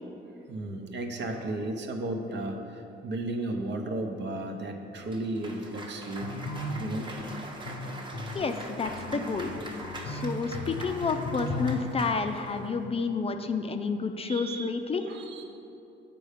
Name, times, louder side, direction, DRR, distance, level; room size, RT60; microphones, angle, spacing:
voice 1, 0.5-2.6 3.0-6.4 6.8-7.2 9.1-9.2 13.2-13.3 14.3-14.7 15.0-15.4, right 2 dB, 65° right, 3 dB, 0.9 m, -34 dB
Cheering / Applause, 5.1-12.8, right 2 dB, 25° right, 0.9 m, -43 dB
sound 1, 6.2-12.0, left 2 dB, 90° left, 0.6 m, -36 dB
voice 2, 8.3-9.5 10.1-15.0, left 4 dB, 30° left, 6 dB, 0.4 m, -30 dB
7.8 x 5.4 x 5.0 m, 2.8 s
cardioid pair, 90°, 20 cm